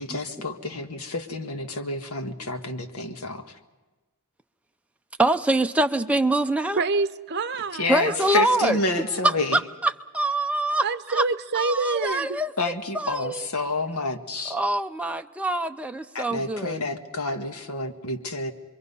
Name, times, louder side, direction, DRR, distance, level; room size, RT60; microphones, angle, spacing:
voice 1, 0.0-3.4 7.7-9.6 12.6-14.6 16.2-18.5, left 2 dB, 90° left, 6 dB, 1.7 m, -29 dB
voice 2, 5.2-6.8 7.9-8.8 9.2-11.2 11.5-13.5 14.5-16.9, right 1 dB, 5° right, 5 dB, 0.7 m, -25 dB
voice 3, 6.7-9.3 10.8-12.4, right 4 dB, 50° right, 10 dB, 0.8 m, -28 dB
28.0 x 23.0 x 5.6 m, 1.2 s
head